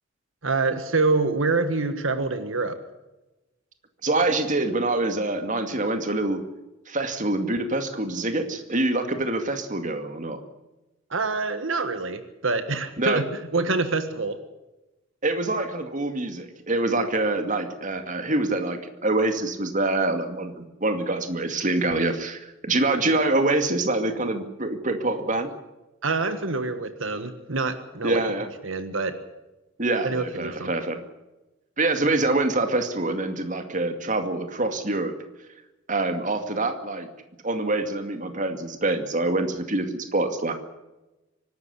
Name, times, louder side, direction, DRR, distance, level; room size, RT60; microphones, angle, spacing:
voice 1, 0.4-2.8 11.1-13.2 13.5-14.4 26.0-28.2 28.6-29.2 30.0-30.7, right 3 dB, 75° right, 9 dB, 1.6 m, -26 dB
voice 2, 4.0-6.4 6.9-10.4 13.0-13.2 15.2-25.5 28.0-28.5 29.8-31.0 31.8-35.1 35.9-37.1 37.4-40.5, right 2 dB, 40° right, 7 dB, 2.3 m, -25 dB
24.5 x 12.5 x 10.0 m, 1.0 s
head